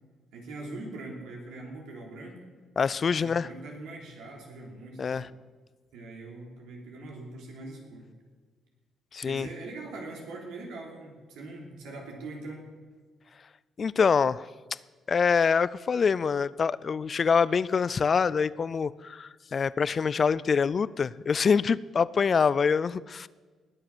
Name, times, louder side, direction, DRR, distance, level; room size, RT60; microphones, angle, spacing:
voice 1, 0.3-2.4 3.1-5.4 5.9-8.1 9.2-12.6, right 2 dB, 90° right, 0 dB, 3.4 m, -42 dB
voice 2, 2.8-3.5 5.0-5.3 9.1-9.5 13.8-14.5 15.1-23.3, left 6 dB, 45° left, 20 dB, 0.4 m, -25 dB
19.5 x 7.7 x 6.2 m, 1.4 s
cardioid pair, 90°, 0 cm